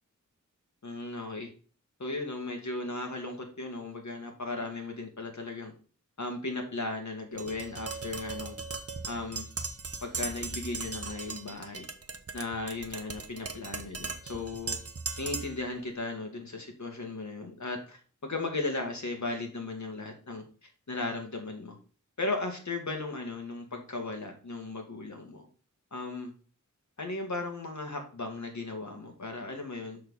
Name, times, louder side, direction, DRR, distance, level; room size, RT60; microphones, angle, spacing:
voice 1, 0.8-1.5 2.0-5.7 6.2-8.6 9.1-9.5 10.0-11.9 12.3-14.8 15.2-21.8 22.2-25.5 25.9-26.3 27.0-30.0, left 2 dB, 60° left, 3 dB, 2.2 m, -36 dB
Tap, 7.4-15.6, right 4 dB, 50° right, 0.9 m, -38 dB
6.4 x 6.4 x 4.1 m, 0.38 s
wide cardioid pair, 70°, 31 cm